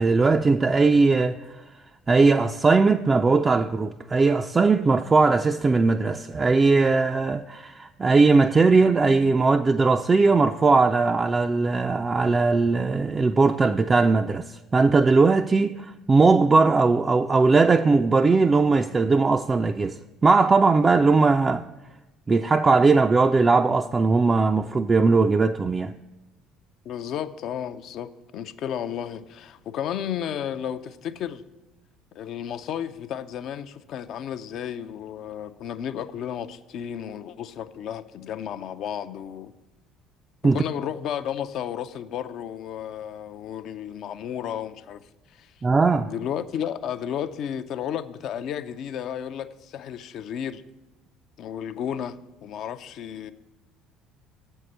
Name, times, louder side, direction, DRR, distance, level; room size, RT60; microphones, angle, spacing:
voice 1, 0.0-1.6 2.1-14.5 14.7-20.0 20.2-21.6 22.3-25.9 40.4-40.6 45.6-46.1, right 4 dB, 30° right, 0.3 m, -19 dB
voice 2, 26.9-31.4 32.1-39.5 40.4-45.1 45.4-45.5 46.1-50.6 51.4-53.3, left 9 dB, 55° left, 0.4 m, -33 dB
7.7 x 5.4 x 7.6 m
hypercardioid pair, 60°, 0 cm